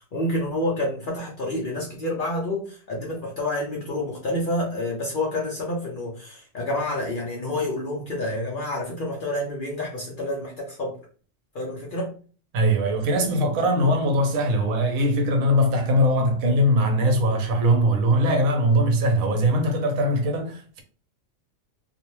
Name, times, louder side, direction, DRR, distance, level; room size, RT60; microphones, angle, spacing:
voice 1, 0.1-10.9 11.5-12.1 15.7-15.8, left 1 dB, 55° left, 0.6 m, -28 dB
voice 2, 12.5-20.8, equal, 90° right, 1.1 m, -21 dB
2.6 x 2.1 x 3.0 m
omnidirectional pair, 1.4 m